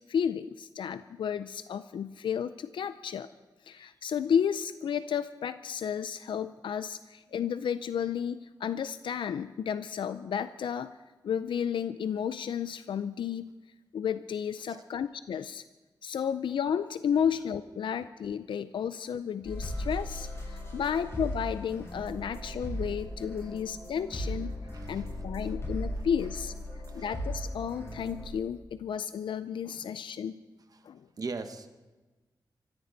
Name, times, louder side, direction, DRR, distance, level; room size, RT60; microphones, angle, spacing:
voice 1, 0.1-3.3 3.6-11.0 11.2-13.5 13.9-15.6 16.0-24.6 24.9-26.5 26.9-30.4 30.8-31.1, left 8 dB, 90° left, 13 dB, 0.4 m, -32 dB
sound 1, 19.4-28.3, equal, 35° left, 7.5 m, -37 dB
voice 2, 24.6-25.6 26.0-26.1 26.9-27.1 30.7-30.9 31.2-31.7, right 4 dB, 50° right, 8 dB, 1.2 m, -42 dB
24.5 x 14.5 x 4.0 m, 1.2 s
wide cardioid pair, 100°, 8 cm